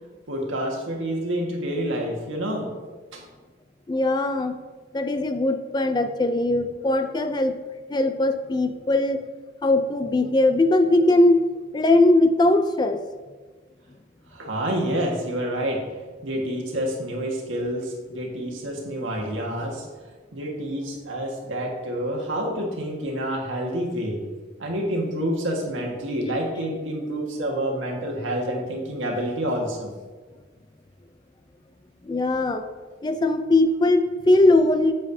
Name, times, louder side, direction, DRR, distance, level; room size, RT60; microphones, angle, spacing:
voice 1, 0.3-2.7 3.1-3.2 14.3-15.8 16.2-19.9 20.3-24.2 24.6-29.9, right 1 dB, 90° right, 0 dB, 1.6 m, -28 dB
voice 2, 3.9-4.6 4.9-7.6 7.9-9.2 9.6-11.5 11.7-13.0 32.0-32.6 33.0-34.9, left 2 dB, 20° left, 8 dB, 0.4 m, -20 dB
8.1 x 7.4 x 2.7 m, 1.4 s
head